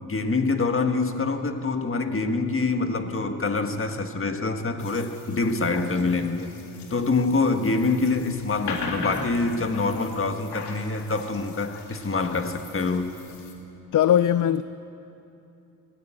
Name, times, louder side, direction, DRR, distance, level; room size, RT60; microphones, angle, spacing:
voice 1, 0.0-6.5 6.9-13.1, left 3 dB, 30° left, 6 dB, 1.7 m, -25 dB
sound 1, 4.8-13.5, left 3 dB, 80° left, 2.5 m, -39 dB
voice 2, 13.9-14.6, left 10 dB, 50° left, 14 dB, 0.5 m, -19 dB
19.5 x 15.5 x 8.8 m, 2.8 s
cardioid pair, 80°, 40 cm